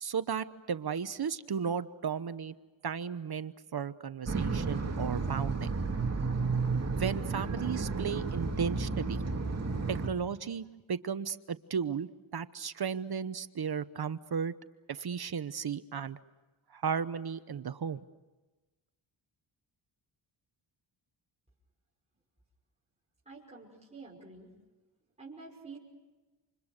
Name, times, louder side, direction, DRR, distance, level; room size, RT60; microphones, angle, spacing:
voice 1, 0.0-2.5 2.8-5.7 6.9-9.2 9.9-14.5 14.9-16.2 16.7-18.0, right 6 dB, 50° right, 12 dB, 1.0 m, -35 dB
sound 1, 4.3-10.1, right 4 dB, 30° right, 2.7 m, -32 dB
voice 2, 23.3-24.5 25.2-25.8, right 4 dB, 15° right, -4 dB, 5.9 m, -48 dB
29.0 x 27.0 x 6.7 m, 1.2 s
wide cardioid pair, 135°, 48 cm